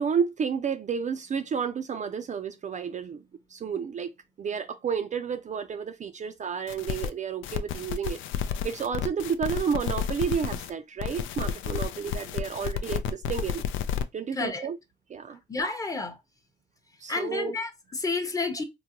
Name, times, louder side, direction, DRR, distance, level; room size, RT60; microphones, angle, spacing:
voice 1, 0.0-3.2 3.5-4.1 4.4-8.2 8.6-13.6 14.1-14.8 15.1-15.4 17.0-17.5, right 6 dB, 40° right, 0.4 m, -31 dB
sound 1, 6.7-7.1 7.4-10.7 11.0-14.0, left 8 dB, 80° left, 0.4 m, -31 dB
voice 2, 15.5-16.2 17.1-18.6, left 3 dB, 15° left, 0.7 m, -30 dB
3.7 x 2.1 x 2.8 m
cardioid pair, 90°, 20 cm